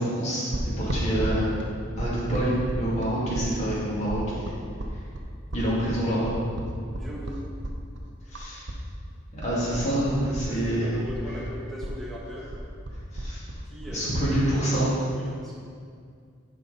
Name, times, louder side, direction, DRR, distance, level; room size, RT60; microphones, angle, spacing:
voice 1, 0.0-1.5 2.0-4.4 5.5-6.3 8.3-8.6 9.3-10.9 13.1-13.4 13.9-14.9, right 1 dB, 35° left, -8 dB, 2.2 m, -27 dB
sound 1, 0.5-8.8 9.1-10.8 11.1-14.3, right 1 dB, 55° right, 0.8 m, -33 dB
voice 2, 5.6-6.0 6.9-7.4 10.5-12.4 13.6-15.6, equal, ahead, -7 dB, 1.6 m, -39 dB
11.0 x 4.8 x 4.0 m, 2.2 s
head